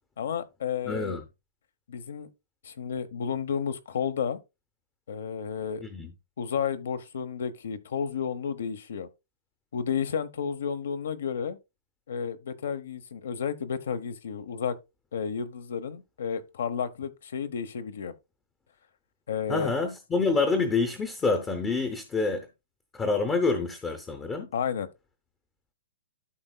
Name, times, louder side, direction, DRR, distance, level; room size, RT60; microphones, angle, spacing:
voice 1, 0.2-1.2 1.9-2.3 2.6-4.4 5.1-5.8 6.4-9.1 9.7-11.6 12.1-14.7 15.1-18.1 19.3-19.7 24.5-24.9, left 7 dB, 70° left, 0.9 m, -32 dB
voice 2, 0.9-1.2 5.8-6.1 19.5-22.5 22.9-24.5, left 4 dB, 10° left, 0.7 m, -27 dB
13.0 x 5.5 x 2.3 m
hypercardioid pair, 170°, 0 cm